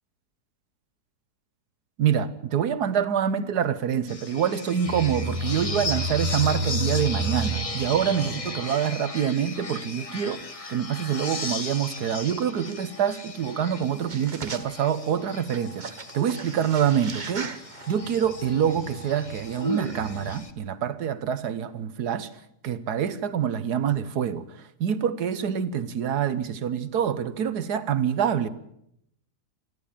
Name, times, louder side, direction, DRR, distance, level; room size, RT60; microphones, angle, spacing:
voice 1, 2.0-17.5 17.9-22.3 22.6-28.5, right 8 dB, 75° right, 1.5 m, -26 dB
sound 1, 4.1-20.5, left 3 dB, 25° left, 1.1 m, -37 dB
sound 2, 4.9-8.8 9.6-9.7 10.6-10.7 12.7-12.8 13.8-13.9 14.1-14.9 15.3-20.4, right 2 dB, 30° right, 1.1 m, -33 dB
28.0 x 11.0 x 8.7 m
omnidirectional pair, 1.7 m